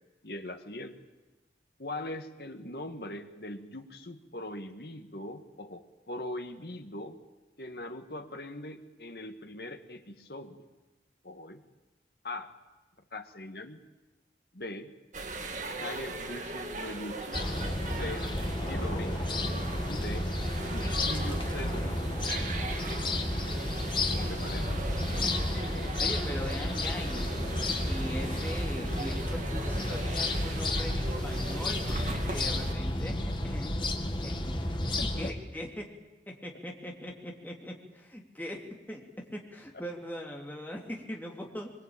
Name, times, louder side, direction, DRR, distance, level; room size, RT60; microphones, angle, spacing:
voice 1, 0.2-1.0 1.8-7.2 7.6-10.7 11.2-11.6 12.2-12.5 13.1-13.8 14.5-14.9 15.8-17.4 18.0-18.3 18.6-19.2 19.9-20.3 20.7-22.3 24.1-24.9 28.8-28.9 35.0-35.3, left 1 dB, 60° left, 7 dB, 2.0 m, -41 dB
sound 1, 15.1-32.7, right 2 dB, 45° right, 2.1 m, -39 dB
sound 2, 17.3-35.3, left 1 dB, 25° left, 2.0 m, -32 dB
voice 2, 26.0-27.3 27.8-33.9 34.2-36.0 36.3-41.7, equal, 10° left, 0 dB, 3.0 m, -41 dB
23.0 x 22.5 x 8.9 m, 1.1 s
head